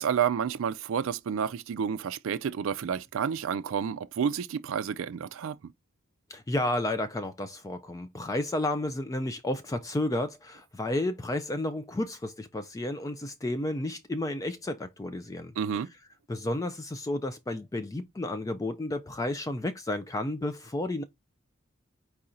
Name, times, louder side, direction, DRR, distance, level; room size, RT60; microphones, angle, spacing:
voice 1, 0.0-5.6 15.6-15.9, right 7 dB, 65° right, 0.3 m, -30 dB
voice 2, 6.3-15.5 16.3-21.0, left 1 dB, 15° left, 0.3 m, -32 dB
4.6 x 2.5 x 4.2 m
head